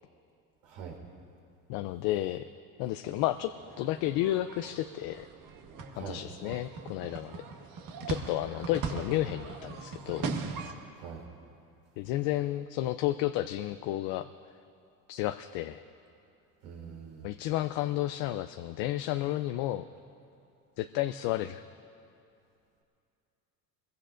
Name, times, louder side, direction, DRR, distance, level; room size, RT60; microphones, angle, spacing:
voice 1, 0.6-1.0 5.9-6.2 11.0-11.2 16.6-17.3, right 7 dB, 85° right, 0 dB, 4.1 m, -43 dB
voice 2, 1.7-2.5 2.8-5.3 6.0-7.5 8.0-10.3 12.0-14.3 15.1-15.8 17.2-19.9 20.8-21.6, left 14 dB, 75° left, 9 dB, 0.6 m, -32 dB
sound 1, 3.0-10.7, right 5 dB, 55° right, 1.5 m, -40 dB
25.5 x 22.0 x 2.5 m, 2.6 s
cardioid pair, 120°, 40 cm